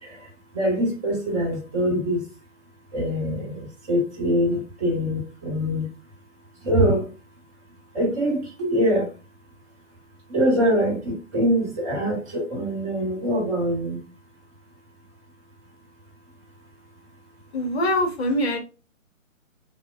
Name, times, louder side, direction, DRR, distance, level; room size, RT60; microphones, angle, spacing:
voice 1, 0.0-2.2 2.9-5.9 6.6-7.1 7.9-9.1 10.3-14.0, equal, 25° right, -2 dB, 1.0 m, -24 dB
voice 2, 17.5-18.6, left 1 dB, 50° left, 3 dB, 0.8 m, -23 dB
3.4 x 2.0 x 2.3 m, 0.32 s
figure-of-eight pair, 135°, 40 cm